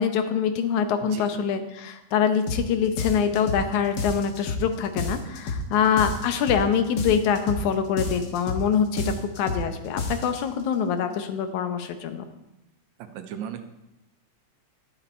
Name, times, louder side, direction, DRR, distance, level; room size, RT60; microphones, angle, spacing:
voice 1, 0.0-12.2, left 7 dB, 85° left, 8 dB, 2.4 m, -24 dB
voice 2, 1.0-1.5 13.0-13.6, right 9 dB, 80° right, 8 dB, 2.2 m, -36 dB
sound 1, 2.5-2.7 3.0-3.7 4.0-4.7 5.0-5.7 6.0-6.7 7.0-7.7 8.0-8.7 9.0-9.7 10.0-10.4, left 2 dB, 50° left, 1.3 m, -30 dB
11.5 x 11.0 x 4.3 m, 0.92 s
omnidirectional pair, 3.3 m